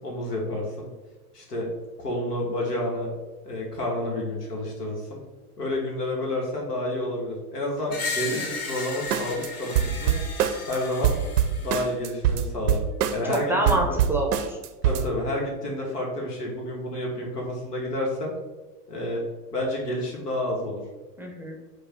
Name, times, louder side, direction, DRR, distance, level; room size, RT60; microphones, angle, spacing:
voice 1, 0.0-0.9 1.3-1.7 2.0-3.1 3.4-5.2 5.6-10.1 10.7-11.2 11.6-12.8 13.1-14.0 14.8-18.3 18.9-19.2 19.5-20.8, left 1 dB, 85° left, -1 dB, 1.4 m, -29 dB
Screech, 7.9-11.9, left 4 dB, 30° left, 1.1 m, -34 dB
sound 1, 9.1-9.5 9.7-10.8 11.0-13.4 13.7-15.1, right 10 dB, 80° right, 0.5 m, -24 dB
voice 2, 13.2-14.6 21.2-21.6, right 2 dB, 5° right, 0 dB, 0.5 m, -27 dB
4.9 x 2.5 x 4.4 m, 1.2 s
figure-of-eight pair, 85°, 46 cm